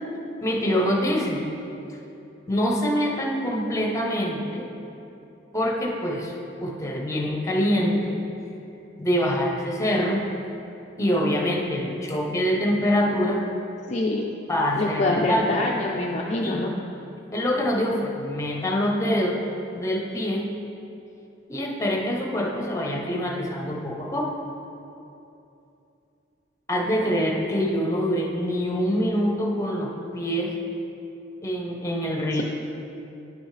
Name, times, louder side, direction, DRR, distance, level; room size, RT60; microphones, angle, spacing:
voice 1, 0.4-1.5 2.5-4.7 5.5-6.3 6.6-8.2 9.0-10.2 11.0-13.4 14.5-15.6 16.4-16.7 17.3-19.4 19.7-20.5 21.5-24.3 26.7-30.6 31.4-32.4, equal, 15° left, -1 dB, 0.9 m, -25 dB
voice 2, 13.9-14.3 14.8-16.7, left 2 dB, 35° left, -2 dB, 0.5 m, -25 dB
10.5 x 6.2 x 3.3 m, 2.8 s
head